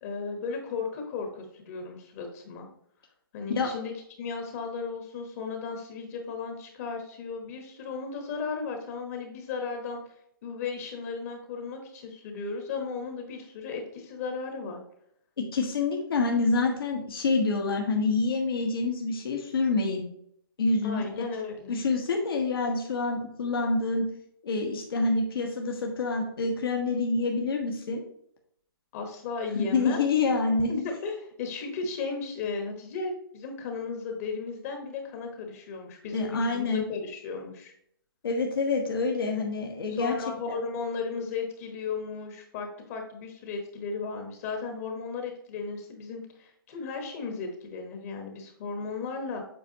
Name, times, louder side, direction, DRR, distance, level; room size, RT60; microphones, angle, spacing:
voice 1, 0.0-2.7 3.3-3.9 4.2-10.0 10.4-14.8 20.8-21.8 28.9-30.0 30.7-37.7 39.9-49.5, left 4 dB, 40° left, 4 dB, 1.2 m, -35 dB
voice 2, 15.4-20.0 20.6-21.2 21.7-24.1 24.4-28.0 29.5-30.9 36.1-36.8 38.2-40.1 40.5-40.6, left 3 dB, 70° left, 1 dB, 1.3 m, -27 dB
8.0 x 4.4 x 2.8 m, 0.70 s
hypercardioid pair, 145°, 12 cm